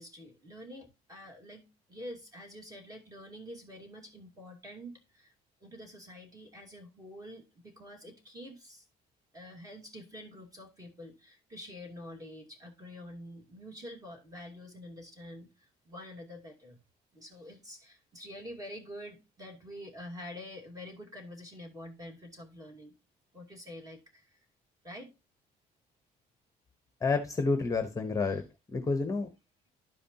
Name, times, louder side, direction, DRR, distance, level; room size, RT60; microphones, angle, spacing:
voice 1, 0.0-5.3 5.6-8.9 9.3-16.8 17.1-22.9 23.3-24.5 24.8-25.1 28.3-28.4, left 1 dB, 20° right, 2.6 m, -47 dB
voice 2, 27.0-28.4 28.7-29.3, left 4 dB, 20° left, 0.9 m, -29 dB
12.5 x 5.0 x 2.8 m
cardioid pair, 110°, 17 cm